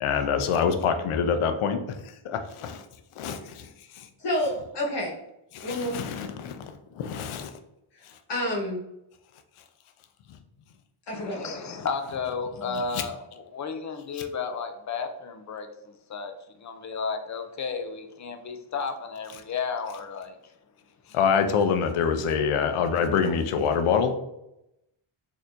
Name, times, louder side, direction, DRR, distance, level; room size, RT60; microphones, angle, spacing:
voice 1, 0.0-2.0 2.2-2.8 3.2-4.1 5.5-7.5 12.9-13.0 21.1-24.1, left 6 dB, 90° left, 8 dB, 0.6 m, -26 dB
voice 2, 4.2-5.2 5.6-6.0 8.3-8.8 11.1-11.7 12.7-12.8, left 1 dB, 55° left, -3 dB, 1.2 m, -29 dB
voice 3, 11.1-20.5 21.1-21.2, left 5 dB, 40° left, 7 dB, 0.4 m, -33 dB
4.3 x 2.8 x 2.5 m, 0.86 s
wide cardioid pair, 135°, 49 cm